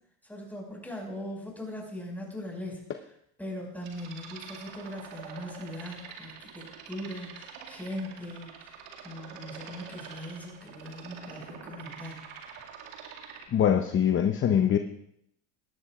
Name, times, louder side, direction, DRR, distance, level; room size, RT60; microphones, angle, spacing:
voice 1, 0.2-2.8 3.4-8.8 9.0-12.3, left 1 dB, 5° left, -1 dB, 5.4 m, -40 dB
sound 1, 3.8-13.5, right 7 dB, 75° right, 2.2 m, -46 dB
voice 2, 13.5-14.8, left 9 dB, 35° left, 7 dB, 0.9 m, -23 dB
18.5 x 13.0 x 2.5 m, 0.71 s
supercardioid pair, 105°, 37 cm